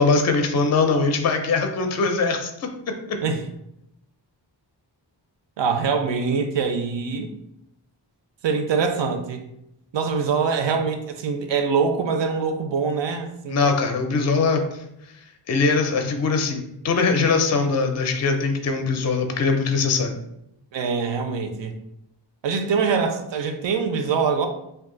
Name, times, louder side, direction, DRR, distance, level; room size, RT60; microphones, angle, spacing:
voice 1, 0.0-2.7 13.5-14.6 15.5-20.2, left 4 dB, 40° left, 5 dB, 0.4 m, -21 dB
voice 2, 5.6-7.3 8.4-9.5 9.9-13.7 20.7-21.8 22.4-24.5, right 5 dB, 75° right, 6 dB, 0.6 m, -24 dB
2.7 x 2.3 x 3.7 m, 0.80 s
wide cardioid pair, 115°, 44 cm